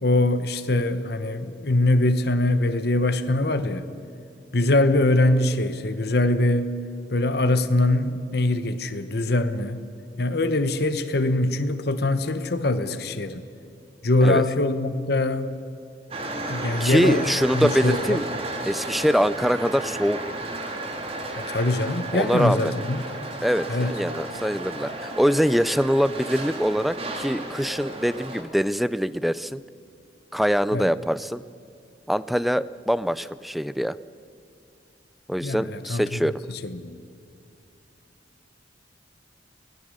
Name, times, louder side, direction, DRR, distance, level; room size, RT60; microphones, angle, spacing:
voice 1, 0.0-3.9 4.5-6.7 7.1-9.8 10.2-13.4 14.0-15.6 16.5-17.3 17.5-18.2 21.4-23.0 23.7-24.0 30.7-30.9 35.4-37.0, left 2 dB, 55° left, 10 dB, 1.1 m, -23 dB
sound 1, 16.1-28.4, right 2 dB, 30° right, 2.3 m, -33 dB
voice 2, 16.8-18.2 18.7-20.2 22.1-22.7 23.4-29.6 30.3-31.4 32.1-34.0 35.3-36.4, equal, ahead, 16 dB, 0.4 m, -23 dB
23.5 x 17.5 x 6.5 m, 2.5 s
head